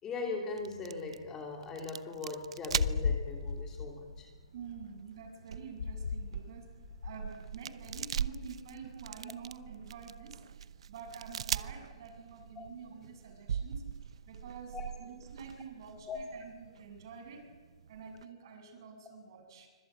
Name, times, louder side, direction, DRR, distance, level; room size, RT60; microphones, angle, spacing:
voice 1, 0.0-4.3 12.6-12.7 14.7-14.8 16.1-16.2, left 4 dB, 15° left, 2 dB, 2.8 m, -40 dB
sound 1, 0.6-18.3, right 8 dB, 65° right, 0.8 m, -42 dB
sound 2, 2.7-4.9 5.7-6.4 6.7-7.3 7.8-8.4, left 5 dB, 90° left, 2.4 m, -36 dB
voice 2, 4.5-10.4 10.9-13.9 14.3-17.5 17.9-19.7, right 5 dB, 45° right, 5 dB, 7.8 m, -48 dB
25.0 x 24.5 x 9.1 m, 1.4 s
hypercardioid pair, 165°, 3 cm